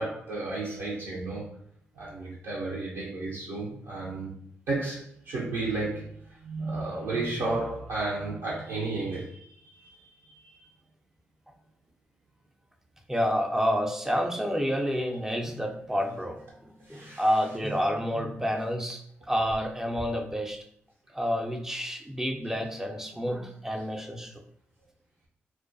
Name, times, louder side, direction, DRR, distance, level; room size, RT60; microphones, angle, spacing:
voice 1, 0.0-1.6 1.9-4.3 4.7-10.6 16.9-17.8 19.4-19.6 22.7-22.8 23.7-23.9, right 2 dB, 70° right, -6 dB, 0.5 m, -33 dB
voice 2, 13.1-16.5 16.9-20.6 21.1-24.4, equal, 10° right, 3 dB, 0.5 m, -29 dB
2.2 x 2.2 x 2.5 m, 0.65 s
hypercardioid pair, 40°, 5 cm